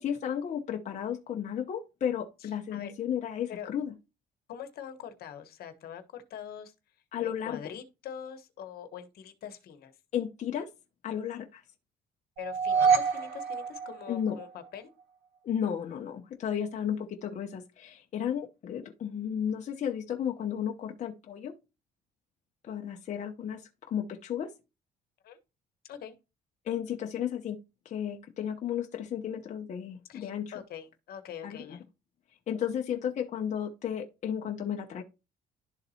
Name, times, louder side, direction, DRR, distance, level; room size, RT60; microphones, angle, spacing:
voice 1, 0.0-3.9 7.1-7.6 10.1-10.7 11.0-11.6 14.1-14.4 15.4-21.5 22.6-24.5 26.6-27.6 27.8-30.6 31.4-31.8 32.5-35.0, left 9 dB, 45° left, 0.9 m, -33 dB
voice 2, 4.5-6.7 7.2-9.9 12.4-14.9 22.6-22.8 25.2-25.4 25.9-26.1 30.1-31.8, left 8 dB, 65° left, 1.3 m, -43 dB
sound 1, 12.4-14.6, right 5 dB, 80° right, 1.3 m, -27 dB
11.5 x 3.9 x 2.8 m
cardioid pair, 110°, 17 cm